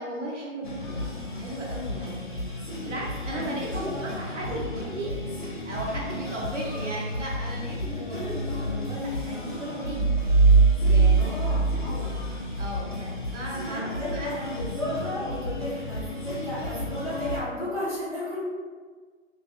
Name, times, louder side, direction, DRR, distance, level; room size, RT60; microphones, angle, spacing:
voice 1, 0.0-2.5 2.8-3.7 4.0-10.1 10.8-11.6 12.6-14.6, right 1 dB, 60° right, -3 dB, 0.8 m, -36 dB
sound 1, 0.6-17.4, left 2 dB, 40° left, 0.4 m, -34 dB
voice 2, 3.3-3.9 7.9-8.2 11.1-12.1 13.6-18.5, left 1 dB, 5° right, -19 dB, 0.8 m, -34 dB
sound 2, 9.9-12.7, right 4 dB, 25° right, 0.5 m, -20 dB
3.4 x 2.4 x 2.4 m, 1.5 s
hypercardioid pair, 170°, 40 cm